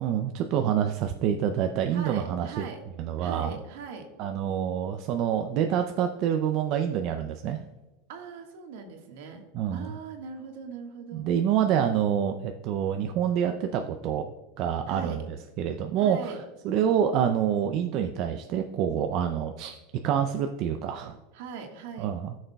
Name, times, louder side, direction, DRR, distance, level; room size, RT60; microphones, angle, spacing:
voice 1, 0.0-2.6 3.0-3.5 4.2-7.6 9.5-9.9 11.1-15.2 15.6-16.4 16.6-19.8 20.0-21.2 22.0-22.4, right 9 dB, 50° right, 6 dB, 0.5 m, -27 dB
voice 2, 1.9-2.8 3.2-4.1 8.1-11.3 14.9-15.2 16.0-16.4 21.3-22.1, right 5 dB, 75° right, 3 dB, 1.6 m, -40 dB
14.5 x 6.4 x 2.3 m, 1.1 s
supercardioid pair, 130°, 0 cm